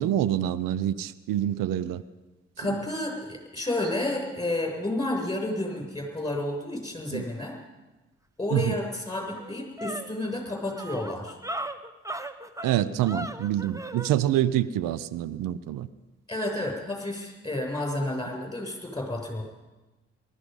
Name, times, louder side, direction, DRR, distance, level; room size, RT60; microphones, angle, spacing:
voice 1, 0.0-2.0 2.7-2.8 7.1-7.2 8.5-8.8 12.6-15.9, right 12 dB, 75° right, 0.7 m, -26 dB
voice 2, 2.6-7.6 8.4-11.4 16.3-19.4, left 1 dB, 15° left, 7.1 m, -31 dB
sound 1, 8.7-8.8 9.1-14.1, right 1 dB, 10° right, 1.2 m, -37 dB
19.0 x 14.0 x 5.5 m
hypercardioid pair, 40°, 33 cm